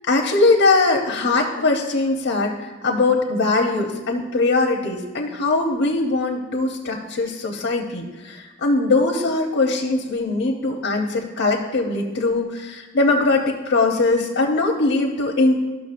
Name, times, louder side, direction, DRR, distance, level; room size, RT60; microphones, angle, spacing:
voice 1, 0.1-15.6, left 3 dB, 90° left, 0 dB, 0.8 m, -21 dB
13.0 x 6.0 x 2.5 m, 1.3 s
head